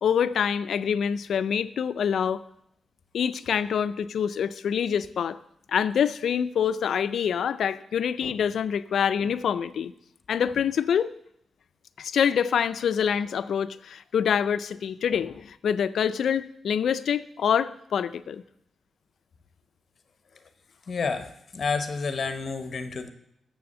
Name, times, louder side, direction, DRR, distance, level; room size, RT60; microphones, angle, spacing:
voice 1, 0.0-2.4 3.1-5.4 5.7-9.9 10.3-11.1 12.0-18.4, left 8 dB, 75° left, 0.4 m, -26 dB
voice 2, 20.9-23.1, left 4 dB, 45° left, 0.9 m, -30 dB
6.9 x 6.9 x 6.6 m
wide cardioid pair, 130°, 0 cm